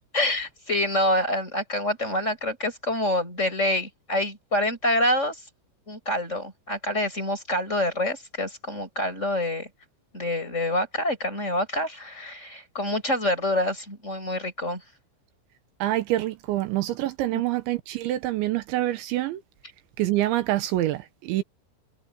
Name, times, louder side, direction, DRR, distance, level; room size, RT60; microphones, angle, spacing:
voice 1, 0.1-5.4 5.9-9.7 10.1-14.8 17.3-17.4, left 1 dB, 15° left, 6.1 m, -26 dB
voice 2, 15.8-19.4 20.0-21.4, right 15 dB, 80° right, 3.3 m, -26 dB
omnidirectional pair, 5.4 m